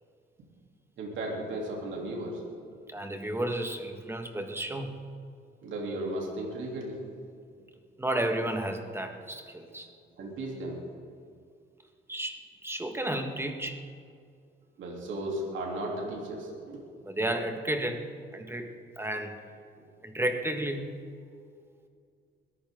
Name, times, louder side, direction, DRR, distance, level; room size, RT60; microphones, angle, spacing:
voice 1, 1.0-2.4 5.6-7.0 10.2-10.8 14.8-16.8 19.7-19.8 21.3-21.4, right 1 dB, 75° right, -2 dB, 3.4 m, -35 dB
voice 2, 2.9-5.0 8.0-9.9 12.1-13.8 17.1-18.0 18.3-18.7 19.0-19.3 20.0-20.9, right 1 dB, 10° right, 4 dB, 1.8 m, -32 dB
21.5 x 14.0 x 3.9 m, 2.2 s
cardioid pair, 90°, 20 cm